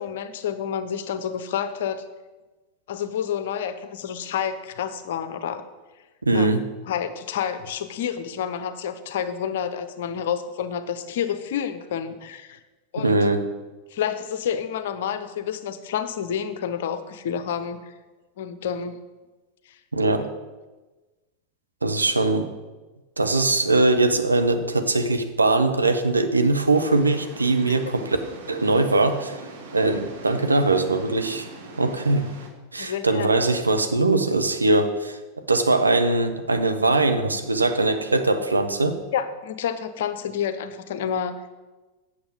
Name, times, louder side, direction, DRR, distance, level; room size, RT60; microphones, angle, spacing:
voice 1, 0.0-2.0 2.9-5.6 6.3-6.5 6.9-12.6 12.9-13.3 13.9-17.9 18.4-19.0 19.7-19.8 27.7-27.8 32.8-33.3 39.1-41.3, left 8 dB, 55° left, 11 dB, 0.7 m, -29 dB
voice 2, 6.2-6.6 13.0-13.5 19.9-20.3 21.8-22.5 23.2-28.2 28.5-29.4 29.7-31.5 31.8-32.3 32.7-35.2 35.5-39.0, right 2 dB, 80° right, 7 dB, 0.8 m, -21 dB
sound 1, 26.7-32.5, right 3 dB, 60° right, 1.3 m, -41 dB
8.7 x 6.6 x 5.4 m, 1.2 s
figure-of-eight pair, 90°, 0 cm